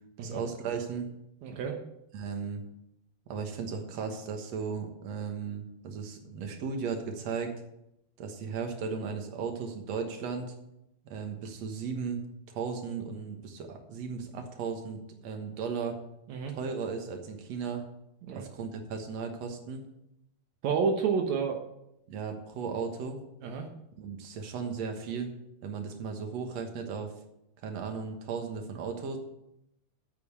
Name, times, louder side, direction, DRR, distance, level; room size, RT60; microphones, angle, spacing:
voice 1, 0.2-1.1 2.1-2.6 3.3-7.5 8.2-10.5 11.0-12.2 12.5-16.0 16.5-17.8 18.3-19.8 22.1-23.2 24.0-25.4 25.6-27.1 27.6-29.2, right 5 dB, 65° right, 4 dB, 1.7 m, -36 dB
voice 2, 1.4-1.8 16.3-16.5 18.2-18.4 20.6-21.6 23.4-23.7, right 5 dB, 85° right, 3 dB, 1.6 m, -29 dB
8.6 x 7.0 x 8.4 m, 0.83 s
omnidirectional pair, 4.9 m